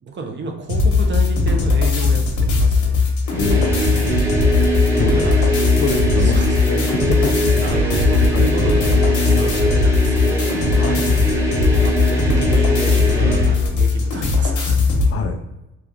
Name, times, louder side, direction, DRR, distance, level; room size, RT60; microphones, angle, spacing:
voice 1, 0.0-2.2 2.5-3.0 5.2-5.3 6.2-6.6 7.6-10.6 11.6-14.8, right 4 dB, 40° right, 4 dB, 0.7 m, -31 dB
sound 1, 0.7-15.1, left 4 dB, 75° left, 1.0 m, -18 dB
sound 2, 3.3-13.6, right 2 dB, 10° right, 0.9 m, -22 dB
voice 2, 3.4-3.9 5.0-5.2 5.8-7.6 8.3-8.4 10.8-11.0 15.1-15.4, left 6 dB, 50° left, 4 dB, 0.4 m, -26 dB
2.9 x 2.4 x 3.5 m, 0.94 s
cardioid pair, 90°, 30 cm